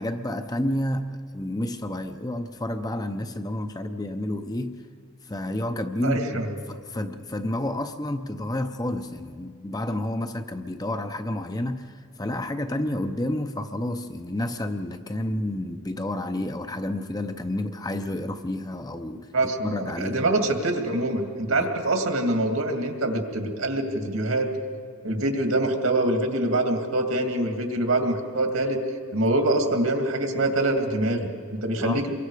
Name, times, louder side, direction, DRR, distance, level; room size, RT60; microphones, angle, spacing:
voice 1, 0.0-4.8 5.2-6.4 6.7-19.3 19.6-20.3 21.4-21.7 31.8-32.1, left 1 dB, 15° left, 7 dB, 0.6 m, -30 dB
voice 2, 6.0-6.6 19.3-24.5 25.0-28.8 29.1-32.1, right 1 dB, 70° right, 4 dB, 2.4 m, -25 dB
27.5 x 23.0 x 4.9 m, 2.1 s
head